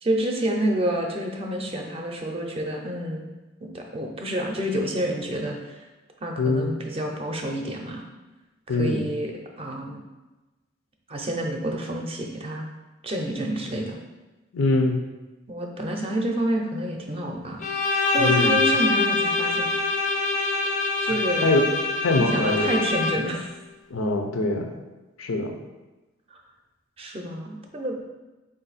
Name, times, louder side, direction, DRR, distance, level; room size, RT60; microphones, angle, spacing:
voice 1, 0.0-3.3 3.6-5.9 6.2-8.0 8.7-10.0 11.1-12.6 13.0-14.0 15.5-17.6 18.0-19.7 21.0-21.7 22.1-23.5 26.3-26.4 27.0-28.0, right 1 dB, 30° right, 1 dB, 0.5 m, -28 dB
voice 2, 6.4-6.7 8.7-9.0 14.5-15.0 18.2-18.6 21.4-21.7 22.0-22.7 23.9-24.7 25.2-25.5, left 2 dB, 90° left, 4 dB, 0.6 m, -23 dB
Bowed string instrument, 17.6-23.4, left 3 dB, 40° left, 0.4 m, -24 dB
4.3 x 2.6 x 4.0 m, 1.1 s
head